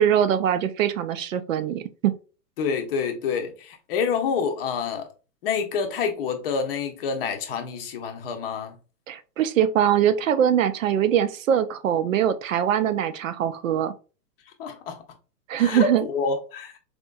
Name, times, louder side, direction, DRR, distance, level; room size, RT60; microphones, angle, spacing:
voice 1, 0.0-2.1 9.1-13.9 15.5-16.0, right 9 dB, 55° right, 0.5 m, -22 dB
voice 2, 2.6-5.1 5.4-8.8 14.6-15.0 15.6-16.8, left 5 dB, 35° left, 0.7 m, -27 dB
4.3 x 2.6 x 2.2 m
hypercardioid pair, 130°, 49 cm